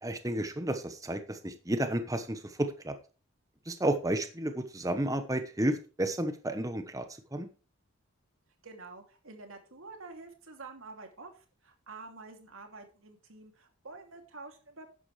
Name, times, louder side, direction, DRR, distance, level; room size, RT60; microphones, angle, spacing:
voice 1, 0.0-2.9 3.7-7.0 7.3-7.5, right 1 dB, 15° right, 8 dB, 1.0 m, -32 dB
voice 2, 8.6-14.9, right 3 dB, 75° right, 4 dB, 2.7 m, -48 dB
11.5 x 9.7 x 3.3 m, 0.35 s
head